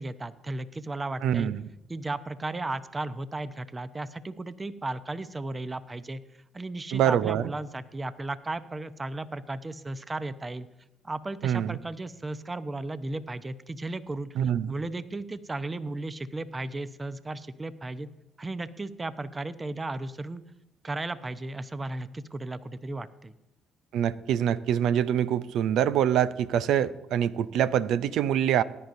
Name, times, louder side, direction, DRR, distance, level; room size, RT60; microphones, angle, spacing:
voice 1, 0.0-1.5 1.9-6.2 6.5-10.7 11.0-14.4 14.7-18.1 18.4-20.4 20.8-23.3, right 2 dB, 25° right, 13 dB, 0.8 m, -35 dB
voice 2, 1.2-1.6 6.9-7.5 11.4-11.8 14.4-14.7 23.9-28.6, right 10 dB, 70° right, 15 dB, 0.5 m, -25 dB
19.0 x 10.5 x 2.7 m, 0.90 s
hypercardioid pair, 55°, 0 cm